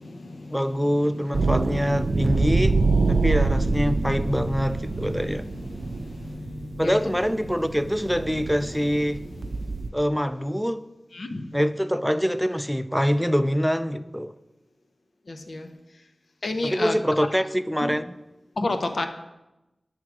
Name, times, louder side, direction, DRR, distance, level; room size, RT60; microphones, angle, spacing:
voice 1, 0.5-2.8 3.1-5.4 6.8-9.2 9.9-10.8 11.5-14.3 16.6-18.0, equal, ahead, 0.4 m, -24 dB
sound 1, 1.3-9.9, right 3 dB, 70° right, 0.5 m, -26 dB
voice 2, 16.4-17.0 18.6-19.1, left 2 dB, 70° left, 0.7 m, -27 dB
8.9 x 3.6 x 5.9 m
wide cardioid pair, 60°, 0 cm